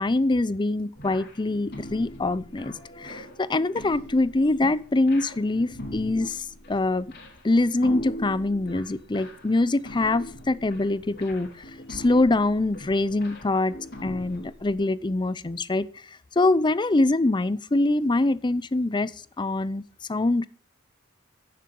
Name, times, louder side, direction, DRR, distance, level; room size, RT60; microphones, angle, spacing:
voice 1, 0.0-7.1 7.4-11.5 11.9-13.7 14.0-15.9 16.4-19.1 19.4-19.8 20.1-20.5, left 2 dB, 20° left, 0.5 m, -24 dB
sound 1, 0.9-14.7, equal, 50° left, 2.9 m, -41 dB
11.0 x 9.7 x 5.3 m
head